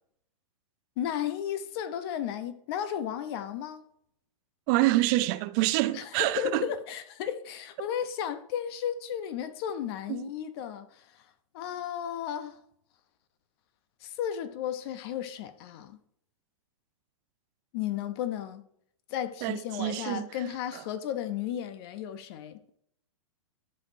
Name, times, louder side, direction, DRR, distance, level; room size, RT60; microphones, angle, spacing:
voice 1, 1.0-3.8 5.9-11.3 11.5-12.6 14.0-16.0 17.7-18.6 19.1-22.7, left 10 dB, 45° left, 0.9 m, -34 dB
voice 2, 4.7-6.7 10.1-10.3 19.4-20.3 20.7-20.8, right 17 dB, 35° right, 0.4 m, -27 dB
12.0 x 5.5 x 2.8 m
hypercardioid pair, 125°, 17 cm